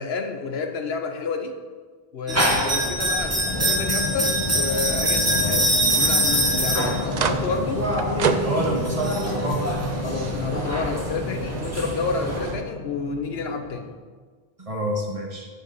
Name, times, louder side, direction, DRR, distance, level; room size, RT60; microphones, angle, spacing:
voice 1, 0.0-1.5 2.1-7.8 10.0-13.9, left 4 dB, 80° left, 6 dB, 1.1 m, -30 dB
sound 1, 2.3-12.5, right 1 dB, 15° right, 1.4 m, -25 dB
sound 2, 2.9-12.6, right 6 dB, 50° right, 0.6 m, -33 dB
sound 3, 3.5-14.0, left 3 dB, 35° left, 0.6 m, -31 dB
voice 2, 8.4-9.8 14.6-15.5, right 1 dB, 35° right, -1 dB, 1.5 m, -27 dB
8.4 x 6.6 x 5.4 m, 1.5 s
omnidirectional pair, 1.0 m